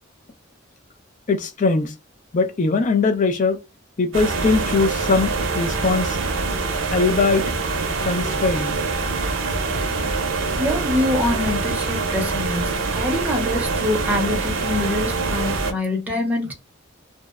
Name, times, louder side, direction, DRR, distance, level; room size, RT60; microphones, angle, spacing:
voice 1, 1.3-1.9 2.3-3.6 4.0-6.2 6.9-7.4 8.0-8.8, left 4 dB, 40° left, 0.4 m, -21 dB
sound 1, 4.1-15.7, right 3 dB, 85° right, 0.6 m, -24 dB
voice 2, 10.6-16.5, left 1 dB, 10° right, 0.6 m, -25 dB
2.6 x 2.0 x 2.3 m
head